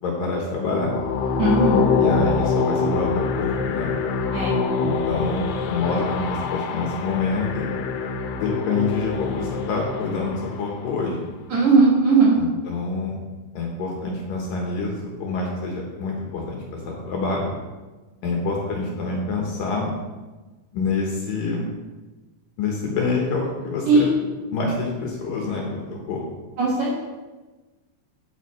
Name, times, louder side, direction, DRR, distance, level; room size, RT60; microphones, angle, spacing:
voice 1, 0.0-0.9 2.0-3.9 4.8-7.7 8.4-11.2 12.4-13.2 13.5-14.9 15.2-17.5 18.2-19.9 20.7-21.7 22.6-24.1 24.5-26.2, left 3 dB, 65° left, -1 dB, 2.5 m, -26 dB
sound 1, 0.7-10.8, left 5 dB, 90° left, 3.0 m, -25 dB
voice 2, 1.4-1.8 4.3-4.6 11.5-12.4 23.9-24.1 26.6-27.1, right 3 dB, 55° right, -5 dB, 2.6 m, -18 dB
9.9 x 9.4 x 3.2 m, 1.2 s
omnidirectional pair, 4.9 m